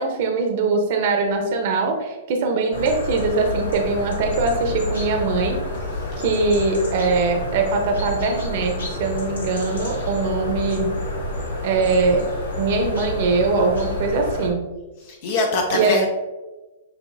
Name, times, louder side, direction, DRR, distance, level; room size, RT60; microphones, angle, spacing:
voice 1, 0.0-5.6 6.2-10.9 11.6-12.3 12.6-14.6 15.7-16.0, right 3 dB, 55° right, 3 dB, 0.9 m, -22 dB
sound 1, 2.7-14.5, left 2 dB, 85° left, 1.0 m, -29 dB
voice 2, 15.0-16.1, left 2 dB, 55° left, 3 dB, 0.6 m, -23 dB
6.8 x 2.8 x 2.7 m, 1.2 s
hypercardioid pair, 120°, 0 cm